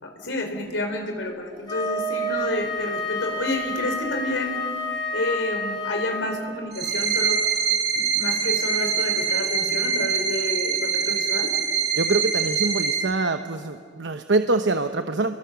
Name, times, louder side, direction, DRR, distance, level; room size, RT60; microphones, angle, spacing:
voice 1, 0.0-4.6 5.1-7.4 7.9-11.5, left 2 dB, 85° left, 3 dB, 3.9 m, -29 dB
Wind instrument woodwind instrument, 1.6-6.5, left 1 dB, 20° left, 5.9 m, -29 dB
sound 1, 6.7-13.0, right 6 dB, 60° right, 5.8 m, -24 dB
voice 2, 12.0-15.4, right 3 dB, 85° right, 8 dB, 0.9 m, -24 dB
29.0 x 22.5 x 7.0 m, 2.1 s
head